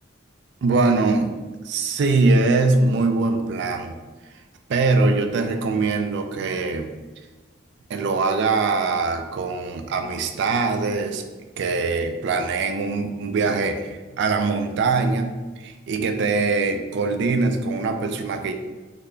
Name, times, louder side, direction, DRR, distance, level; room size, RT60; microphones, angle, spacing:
voice 1, 0.6-1.3 1.6-3.9 4.7-6.9 7.9-11.2 11.6-18.5, right 3 dB, 60° right, 6 dB, 0.3 m, -22 dB
3.3 x 2.2 x 3.7 m, 1.2 s
head